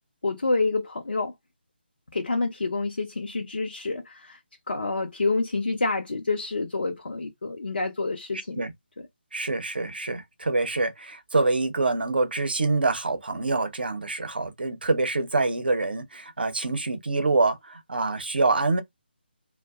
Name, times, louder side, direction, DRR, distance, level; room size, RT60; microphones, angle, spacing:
voice 1, 0.2-1.3 2.1-4.4 4.7-8.6 9.0-9.1, left 3 dB, 60° left, 0.6 m, -28 dB
voice 2, 9.3-18.8, right 3 dB, 60° right, 0.7 m, -25 dB
2.5 x 2.1 x 2.3 m
figure-of-eight pair, 150°, 6 cm